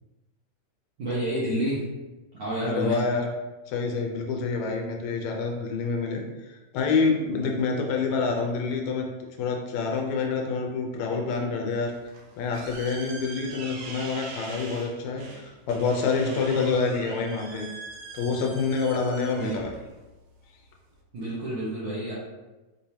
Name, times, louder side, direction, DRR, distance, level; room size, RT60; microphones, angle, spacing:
voice 1, 1.0-1.9 2.3-3.0 19.4-19.6 21.1-22.1, right 1 dB, 60° right, -9 dB, 1.3 m, -29 dB
voice 2, 2.7-3.3 3.7-6.2 6.5-9.1 9.4-11.9 12.4-17.7 18.1-19.7, left 4 dB, 75° left, 1 dB, 1.9 m, -27 dB
sound 1, 11.9-21.0, right 3 dB, 75° right, 1.6 m, -43 dB
5.3 x 3.2 x 2.8 m, 1.1 s
omnidirectional pair, 3.4 m